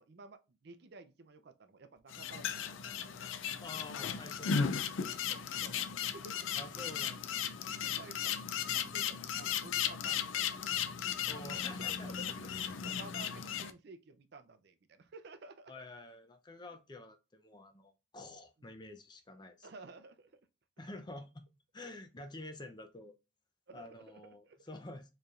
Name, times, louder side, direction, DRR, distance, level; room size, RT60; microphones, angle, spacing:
voice 1, 0.0-2.6 5.3-6.9 7.6-8.4 8.7-10.4 10.8-15.7 18.6-18.7 19.6-20.3 23.7-24.6, right 3 dB, 55° right, 0.5 m, -54 dB
sound 1, 2.1-13.7, left 8 dB, 90° left, 0.4 m, -36 dB
voice 2, 3.6-4.7 6.6-7.7 11.3-12.1 15.7-19.7 20.8-21.4 21.7-23.2 23.7-25.1, left 2 dB, 25° left, 0.5 m, -49 dB
4.6 x 3.2 x 2.4 m
head